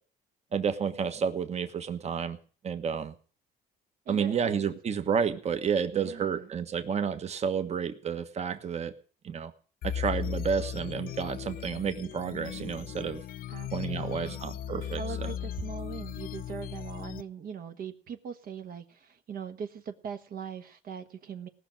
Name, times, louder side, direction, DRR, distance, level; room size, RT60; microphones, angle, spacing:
voice 1, 0.5-2.4 2.6-3.1 4.1-8.9 9.2-9.5 9.8-13.2 13.7-15.3, right 6 dB, 40° right, 9 dB, 1.4 m, -30 dB
voice 2, 4.0-4.6 5.9-6.5 13.5-14.4 15.0-21.5, right 7 dB, 60° right, 7 dB, 1.3 m, -41 dB
sound 1, 9.8-17.2, left 9 dB, 60° left, 0.6 m, -37 dB
18.0 x 6.4 x 9.1 m, 0.43 s
cardioid pair, 110°, 17 cm